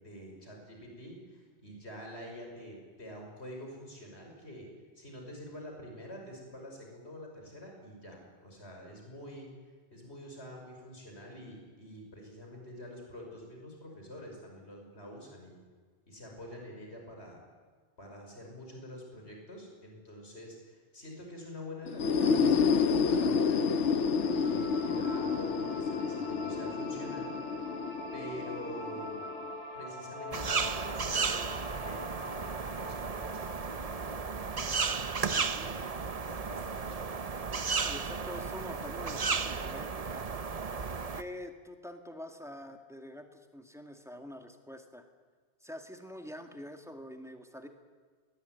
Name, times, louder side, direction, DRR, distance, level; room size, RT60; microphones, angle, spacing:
voice 1, 0.0-4.7 5.0-9.5 9.9-15.6 16.1-17.4 18.0-22.8 23.1-23.9 24.1-27.7 28.1-29.3 29.7-34.0 34.7-35.8 36.2-37.2, equal, 70° left, 1 dB, 6.1 m, -47 dB
sound 1, 21.9-29.5, left 5 dB, 90° left, 1.2 m, -29 dB
sound 2, 24.1-35.2, left 1 dB, 40° left, 5.4 m, -44 dB
sound 3, 30.3-41.2, right 5 dB, 35° right, 0.9 m, -34 dB
voice 2, 37.8-40.3 41.1-45.1 45.6-47.7, left 1 dB, ahead, 5 dB, 2.1 m, -46 dB
21.5 x 19.5 x 9.5 m, 1.5 s
omnidirectional pair, 1.2 m